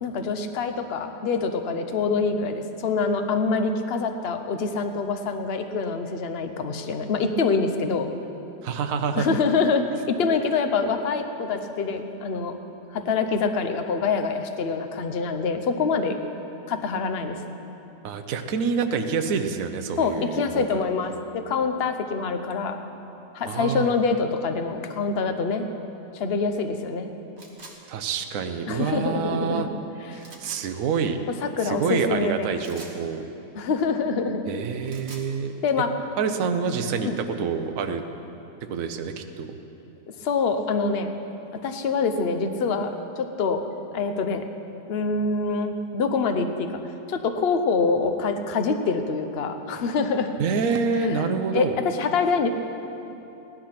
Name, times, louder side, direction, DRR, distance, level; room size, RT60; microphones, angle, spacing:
voice 1, 0.0-8.1 9.2-12.6 12.9-16.2 16.7-17.4 20.0-22.8 23.3-25.7 26.1-27.1 28.7-29.8 30.1-30.3 31.4-32.5 33.5-34.4 35.6-35.9 37.0-37.2 40.2-41.1 41.6-43.6 43.9-44.4 44.9-46.8 47.1-50.3 51.1-51.3 51.5-52.5, left 4 dB, 45° left, 6 dB, 0.9 m, -25 dB
voice 2, 8.6-9.3 18.0-20.8 23.5-23.9 27.9-29.7 30.1-31.2 31.6-33.2 34.5-35.5 36.2-37.1 37.4-38.0 38.7-39.6 50.4-51.8, right 5 dB, 55° right, 6 dB, 1.1 m, -27 dB
sound 1, 27.4-27.8 30.2-30.6 32.6-33.0 34.7-35.3, right 2 dB, 30° right, 1.6 m, -44 dB
17.0 x 12.0 x 5.9 m, 2.9 s
omnidirectional pair, 1.9 m